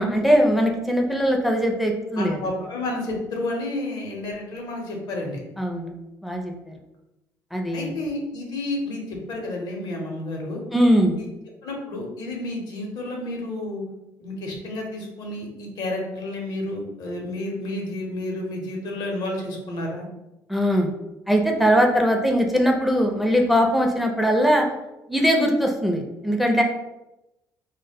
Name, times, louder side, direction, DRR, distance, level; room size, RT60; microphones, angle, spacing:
voice 1, 0.0-2.4 5.6-5.9 6.2-6.7 7.5-7.9 10.7-11.2 20.5-20.9 21.3-24.7 25.1-26.6, equal, ahead, 2 dB, 0.4 m, -20 dB
voice 2, 2.2-5.4 7.7-10.6 11.2-11.3 11.6-13.8 14.2-20.1, left 1 dB, 65° left, 0 dB, 0.7 m, -30 dB
2.1 x 2.0 x 3.4 m, 0.94 s
supercardioid pair, 85°, 7 cm